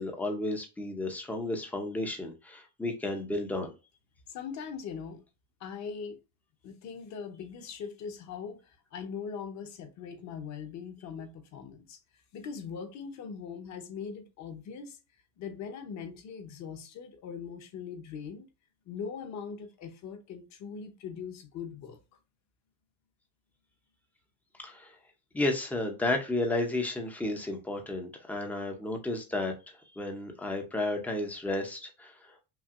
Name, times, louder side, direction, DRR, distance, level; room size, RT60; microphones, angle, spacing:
voice 1, 0.0-3.7 24.6-24.9 25.3-32.4, left 2 dB, 5° left, 0.5 m, -32 dB
voice 2, 4.3-5.2 5.6-6.2 6.6-15.0 15.4-18.5 18.9-22.0, left 6 dB, 40° left, 0.9 m, -41 dB
5.8 x 2.5 x 2.4 m
cardioid pair, 160°, 45 cm